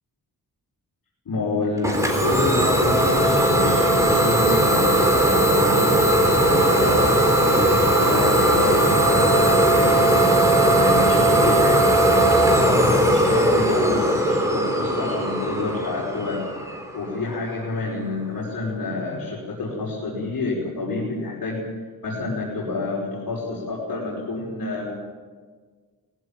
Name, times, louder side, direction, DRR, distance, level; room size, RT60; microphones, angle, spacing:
voice 1, 1.3-6.1 6.4-7.7 8.0-12.3 12.7-16.4 16.7-21.6 22.0-25.0, left 3 dB, 80° left, -5 dB, 5.8 m, -28 dB
Idling / Domestic sounds home sounds, 1.8-17.4, right 1 dB, 10° right, 3.7 m, -18 dB
20.5 x 17.0 x 9.2 m, 1.5 s
wide cardioid pair, 170°, 35 cm